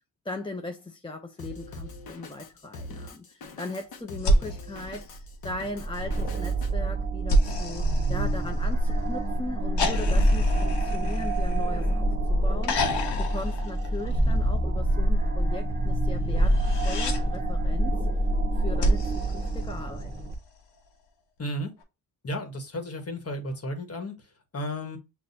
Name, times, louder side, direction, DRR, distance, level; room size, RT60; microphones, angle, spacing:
voice 1, 0.2-12.9 13.2-16.6 16.8-17.9 18.5-20.1, left 2 dB, 15° left, 0.5 m, -38 dB
Drum kit, 1.4-6.7, left 2 dB, 60° left, 1.0 m, -42 dB
sound 1, 4.2-5.8 7.3-9.0 9.8-12.0 12.6-14.5 16.4-17.2 18.8-20.3 21.8-21.9, equal, 75° left, 1.3 m, -29 dB
sound 2, 5.8-20.3, right 1 dB, 20° right, 1.0 m, -26 dB
voice 2, 21.4-21.7 22.2-25.0, equal, 35° left, 1.4 m, -34 dB
6.8 x 2.5 x 2.7 m
cardioid pair, 95°, 42 cm